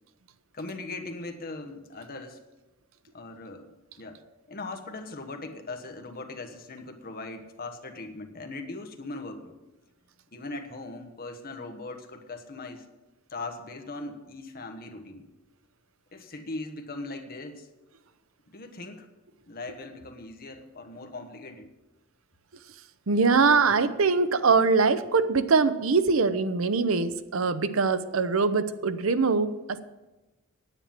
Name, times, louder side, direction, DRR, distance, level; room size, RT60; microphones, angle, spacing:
voice 1, 0.5-2.4 3.1-4.2 4.5-9.5 10.3-12.8 13.3-15.3 16.1-17.7 18.5-19.1 19.5-21.7, left 2 dB, 45° left, 6 dB, 1.2 m, -39 dB
voice 2, 23.1-29.8, right 4 dB, 70° right, 13 dB, 0.7 m, -23 dB
9.8 x 8.9 x 7.4 m, 1.1 s
head